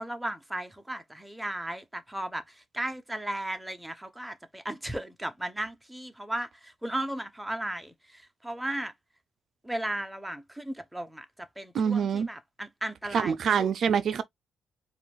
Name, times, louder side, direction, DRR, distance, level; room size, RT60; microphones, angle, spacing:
voice 1, 0.0-8.9 9.6-13.7, right 1 dB, 5° right, 0.8 m, -36 dB
voice 2, 11.7-12.3 13.1-14.2, right 7 dB, 55° right, 0.4 m, -25 dB
4.7 x 2.4 x 3.4 m
cardioid pair, 125°, 0 cm